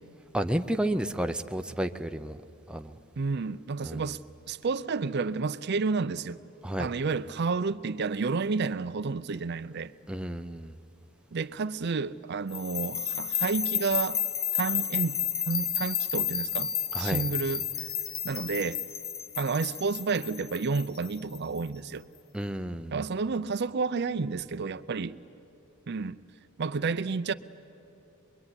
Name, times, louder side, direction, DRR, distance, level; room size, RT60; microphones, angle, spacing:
voice 1, 0.3-2.4 2.7-2.9 3.8-4.1 6.6-6.9 10.1-10.7 16.9-17.3 22.3-23.0, right 1 dB, 5° right, 0.6 m, -31 dB
voice 2, 3.2-4.2 4.5-6.4 6.8-9.9 11.3-14.2 14.5-15.2 15.5-17.7 18.2-18.8 19.4-22.1 22.9-25.2 25.9-26.2 26.6-27.3, right 4 dB, 50° right, 0.5 m, -30 dB
sound 1, 12.5-21.6, left 9 dB, 75° left, 1.6 m, -31 dB
23.5 x 23.0 x 9.7 m
head